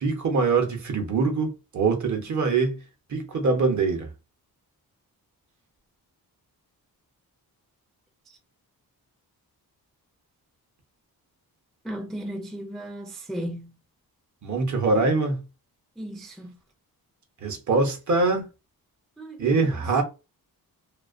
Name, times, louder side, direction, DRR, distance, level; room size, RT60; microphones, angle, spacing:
voice 1, 0.0-2.8 3.1-4.1 14.4-15.4 17.4-18.5 19.4-20.0, right 4 dB, 50° right, 0.8 m, -23 dB
voice 2, 11.8-13.7 16.0-16.6 19.2-19.9, right 1 dB, ahead, 0.3 m, -36 dB
2.5 x 2.3 x 2.4 m
wide cardioid pair, 110°, 37 cm